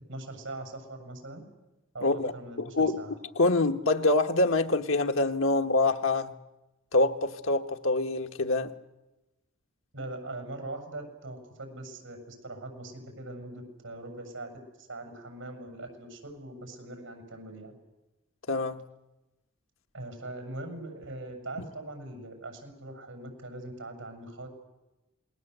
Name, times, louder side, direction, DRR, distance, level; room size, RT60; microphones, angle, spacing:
voice 1, 0.1-1.4 1.9-3.1 9.9-14.5 14.8-17.7 19.9-24.5, right 2 dB, 70° right, 7.1 m, -41 dB
voice 2, 2.0-2.3 2.8-3.0 3.3-6.3 6.9-8.7 18.5-18.8, left 2 dB, 80° left, 1.4 m, -25 dB
27.5 x 20.5 x 8.1 m
head